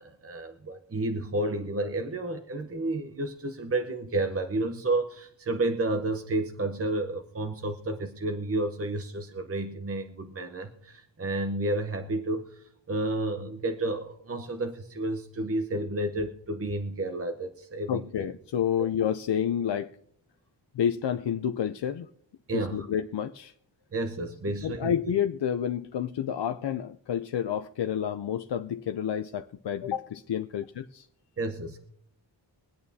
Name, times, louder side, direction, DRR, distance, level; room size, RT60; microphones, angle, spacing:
voice 1, 0.0-18.3 22.5-22.9 23.9-24.9 31.4-31.9, right 2 dB, 30° right, 0.9 m, -31 dB
voice 2, 17.9-19.9 20.7-22.1 22.5-23.5 24.6-31.1, left 9 dB, 65° left, 0.6 m, -29 dB
23.5 x 8.8 x 2.7 m
wide cardioid pair, 115°, 44 cm